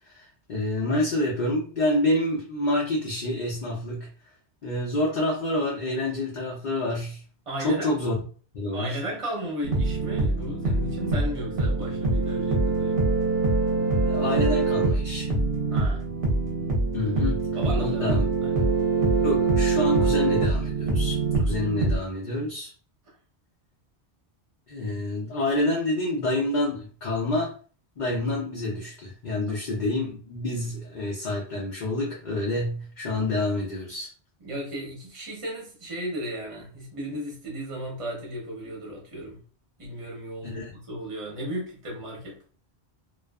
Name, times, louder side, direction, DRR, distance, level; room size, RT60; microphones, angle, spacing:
voice 1, 0.0-4.1 4.6-7.2 7.6-8.2 8.5-9.0 14.1-15.3 16.9-17.5 17.8-18.2 19.2-22.7 24.7-27.5 28.0-34.1 40.4-40.7, left 1 dB, 55° left, 0.6 m, -28 dB
voice 2, 7.5-8.0 8.7-13.0 15.7-16.0 17.5-18.7 29.5-29.6 34.4-39.4 39.8-42.4, equal, 30° right, 0.9 m, -35 dB
sound 1, 9.6-22.0, right 3 dB, 60° right, 0.8 m, -24 dB
2.5 x 2.3 x 2.2 m
omnidirectional pair, 1.1 m